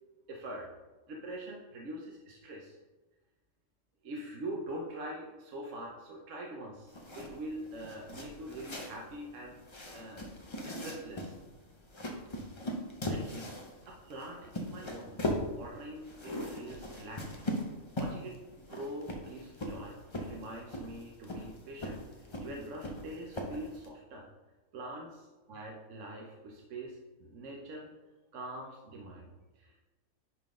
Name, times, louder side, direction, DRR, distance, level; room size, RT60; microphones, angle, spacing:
voice 1, 0.3-0.7 1.1-2.8 4.0-9.6 9.9-10.3 10.6-11.4 13.1-13.5 13.8-17.4 17.9-24.3 24.7-27.9 28.3-29.8, right 1 dB, 65° right, -1 dB, 1.1 m, -44 dB
sound 1, 6.9-23.9, left 1 dB, 30° left, 0.6 m, -40 dB
10.5 x 3.8 x 3.7 m, 1.2 s
omnidirectional pair, 1.4 m